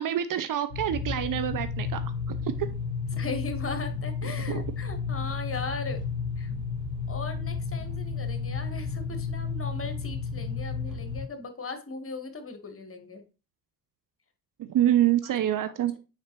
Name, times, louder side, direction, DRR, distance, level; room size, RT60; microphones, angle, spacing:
voice 1, 0.0-2.7 4.5-4.6 14.6-15.9, right 11 dB, 50° right, 11 dB, 0.6 m, -26 dB
sound 1, 0.7-11.2, left 5 dB, 85° right, 4.0 m, -32 dB
voice 2, 3.1-6.0 6.4-6.5 7.1-13.2 15.2-15.3, left 3 dB, 30° left, 8 dB, 1.4 m, -38 dB
7.1 x 5.1 x 2.9 m, 0.32 s
hypercardioid pair, 40°, 44 cm